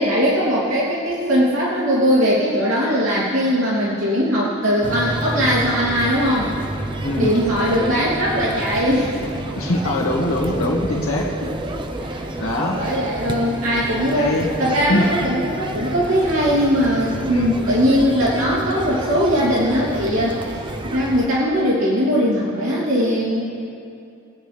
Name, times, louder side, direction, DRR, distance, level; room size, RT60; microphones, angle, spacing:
voice 1, 0.0-6.5 7.2-9.4 11.4-11.5 12.0-12.3 12.7-14.3 14.6-20.4 20.8-23.4, equal, 70° right, -8 dB, 3.1 m, -20 dB
sound 1, 4.8-21.3, right 1 dB, 25° right, 0.7 m, -29 dB
voice 2, 9.6-11.3 12.4-12.8 14.1-14.5 14.9-15.1 17.3-17.6, left 1 dB, 75° left, -2 dB, 1.9 m, -22 dB
22.5 x 9.1 x 3.5 m, 2.5 s
head